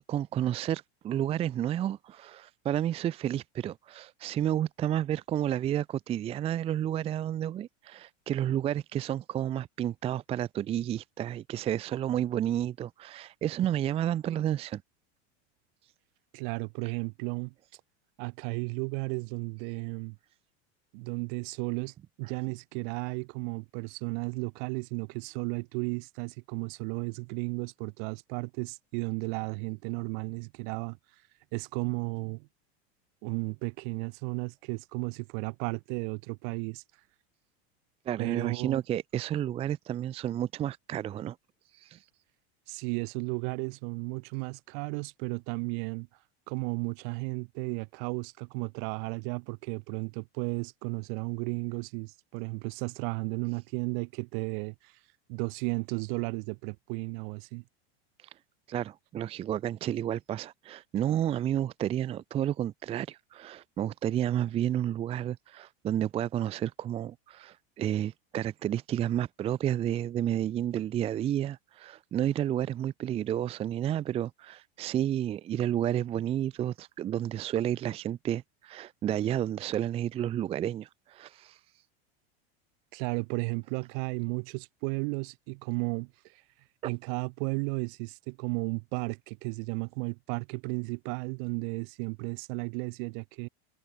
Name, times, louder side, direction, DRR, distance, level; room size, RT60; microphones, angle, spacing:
voice 1, 0.1-14.8 38.1-41.4 41.7-42.0 58.2-58.3 58.7-81.6, right 11 dB, 20° right, 0.6 m, -31 dB
voice 2, 16.3-17.5 18.2-20.2 20.9-31.0 31.5-32.5 33.2-36.8 38.2-38.8 42.7-46.1 46.5-54.9 55.3-57.6 82.9-86.4 86.8-93.5, right 37 dB, 50° right, 1.5 m, -34 dB
supercardioid pair, 165°, 33 cm